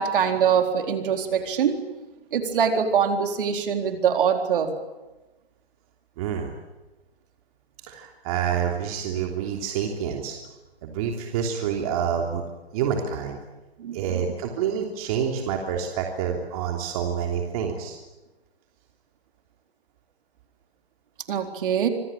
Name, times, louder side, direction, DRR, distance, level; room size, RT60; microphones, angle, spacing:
voice 1, 0.0-1.8 2.3-4.7 13.8-14.3 21.3-21.9, right 7 dB, 55° right, 5 dB, 4.2 m, -23 dB
voice 2, 6.2-6.5 7.9-10.4 10.8-12.4 12.7-13.4 13.9-18.0, right 8 dB, 35° right, 2 dB, 3.2 m, -27 dB
26.5 x 21.5 x 9.0 m, 1.1 s
hypercardioid pair, 150°, 31 cm